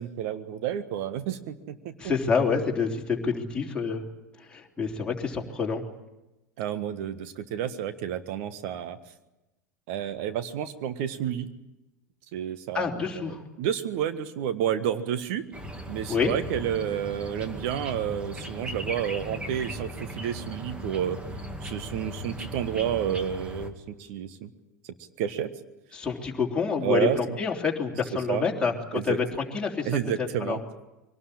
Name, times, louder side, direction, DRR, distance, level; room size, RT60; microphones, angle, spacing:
voice 1, 0.0-1.9 6.6-9.0 9.9-11.5 12.3-13.1 13.6-15.4 15.9-21.2 21.6-24.5 25.2-25.5 26.8-27.4 28.3-28.5 28.9-29.2 29.8-30.6, right 10 dB, 50° right, 10 dB, 1.5 m, -30 dB
voice 2, 2.0-4.0 4.5-5.8 12.7-13.4 16.1-16.3 25.9-29.2 29.5-29.9 30.2-30.6, left 5 dB, 10° left, -1 dB, 3.5 m, -27 dB
sound 1, 15.5-23.7, equal, 10° right, 2.3 m, -38 dB
23.5 x 18.5 x 8.9 m, 0.99 s
figure-of-eight pair, 85°, 9 cm